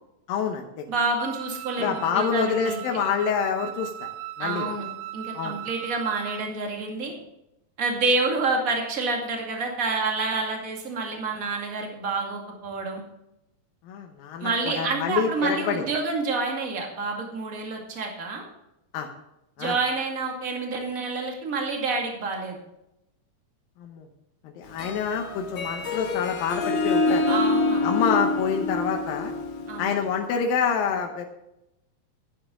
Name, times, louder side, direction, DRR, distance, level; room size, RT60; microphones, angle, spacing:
voice 1, 0.3-0.8 1.8-4.1 4.4-4.7 5.3-5.6 13.8-15.9 18.9-19.1 19.6-19.8 23.8-24.1 24.4-27.3 27.8-29.3 29.8-31.3, left 7 dB, 80° left, 3 dB, 2.7 m, -27 dB
voice 2, 0.9-2.8 4.4-4.9 5.1-7.1 7.8-13.0 14.4-18.4 19.6-22.6 27.3-28.0 29.7-30.1, right 3 dB, 30° right, 1 dB, 2.0 m, -28 dB
Wind instrument woodwind instrument, 1.2-6.5, right 15 dB, 80° right, 1.8 m, -38 dB
Harp, 24.7-30.2, left 2 dB, 55° left, 1.4 m, -26 dB
11.5 x 10.5 x 3.7 m, 0.87 s
omnidirectional pair, 4.1 m